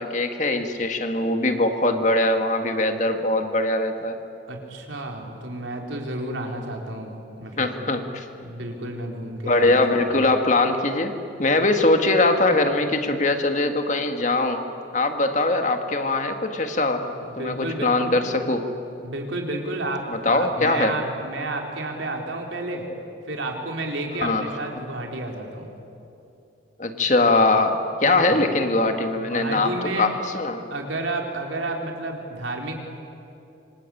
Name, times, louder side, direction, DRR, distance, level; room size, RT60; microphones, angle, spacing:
voice 1, 0.0-4.2 7.6-8.3 9.5-14.6 14.9-17.1 17.4-18.6 20.1-21.0 24.2-24.4 26.8-30.6, left 2 dB, 40° left, 6 dB, 1.9 m, -22 dB
voice 2, 4.5-7.7 8.4-10.2 17.2-18.1 19.0-22.9 23.3-25.7 28.0-28.3 29.2-30.1 30.7-32.8, right 2 dB, 85° right, 1 dB, 4.2 m, -31 dB
26.5 x 26.0 x 8.6 m, 2.8 s
head